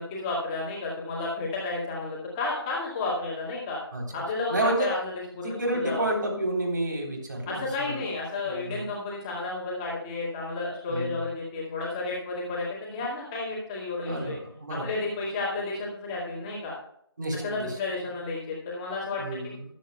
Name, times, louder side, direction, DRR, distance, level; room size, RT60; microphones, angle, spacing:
voice 1, 0.0-3.8 4.1-5.1 5.4-5.5 5.8-6.1 7.5-14.4 14.7-16.7 17.4-19.2, left 3 dB, 10° left, -6 dB, 2.1 m, -32 dB
voice 2, 3.9-4.2 4.5-4.9 5.4-8.0 8.4-8.9 10.9-11.3 14.1-15.0 17.2-17.7 19.2-19.6, right 1 dB, 45° right, 1 dB, 3.7 m, -30 dB
23.0 x 8.4 x 2.3 m, 0.69 s
figure-of-eight pair, 160°, 14 cm